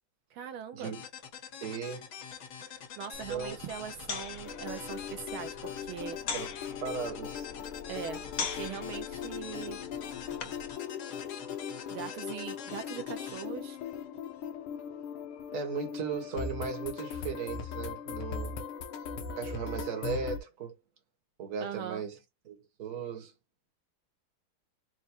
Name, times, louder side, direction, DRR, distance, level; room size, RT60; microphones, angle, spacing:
voice 1, 0.3-0.9 2.6-6.2 7.9-9.8 11.9-13.8 21.6-22.1, right 9 dB, 80° right, 1.4 m, -41 dB
sound 1, 0.8-14.5, left 7 dB, 70° left, 1.9 m, -46 dB
voice 2, 1.6-2.1 3.3-3.6 6.3-6.5 6.8-7.5 15.5-18.6 19.4-20.7 21.4-22.2 22.5-23.3, right 6 dB, 45° right, 1.4 m, -37 dB
sound 2, 3.1-10.7, left 5 dB, 55° left, 1.2 m, -42 dB
sound 3, 4.4-20.4, left 7 dB, 90° left, 1.7 m, -39 dB
4.6 x 2.2 x 4.2 m
omnidirectional pair, 2.3 m